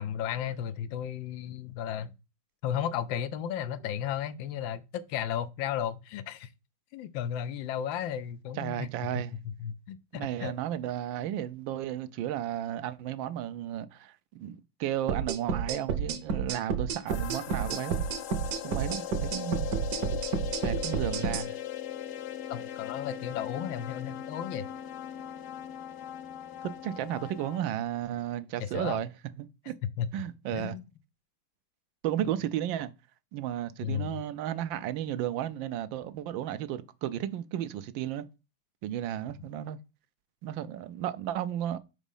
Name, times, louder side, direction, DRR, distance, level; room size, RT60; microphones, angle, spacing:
voice 1, 0.0-2.1 2.6-6.5 6.9-8.9 9.1-10.5 22.5-24.7 28.6-29.0 30.0-30.1 30.5-30.8 32.2-32.3 33.8-34.2, left 9 dB, 85° left, 1.4 m, -34 dB
voice 2, 8.6-9.3 10.1-18.0 18.6-19.7 20.6-21.6 26.6-29.1 29.4-29.7 30.1-30.8 32.0-32.9 33.3-38.3 38.8-39.8 40.4-41.8, right 11 dB, 80° right, 1.3 m, -33 dB
sound 1, 15.1-21.5, right 6 dB, 60° right, 1.2 m, -31 dB
sound 2, 17.1-27.6, left 11 dB, 70° left, 1.0 m, -39 dB
5.0 x 4.1 x 5.3 m
omnidirectional pair, 2.1 m